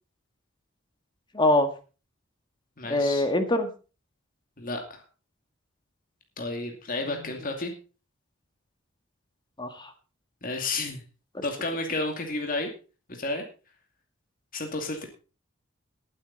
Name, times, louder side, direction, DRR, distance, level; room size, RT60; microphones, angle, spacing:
voice 1, 1.3-1.7 2.9-3.7 9.6-9.9 11.3-11.4, left 1 dB, 20° left, 7 dB, 1.9 m, -23 dB
voice 2, 2.8-3.2 4.6-5.0 6.4-7.7 10.4-11.0 11.4-12.7 13.1-13.4 14.5-15.1, left 2 dB, 45° left, 3 dB, 2.5 m, -31 dB
18.5 x 8.6 x 4.1 m, 0.34 s
head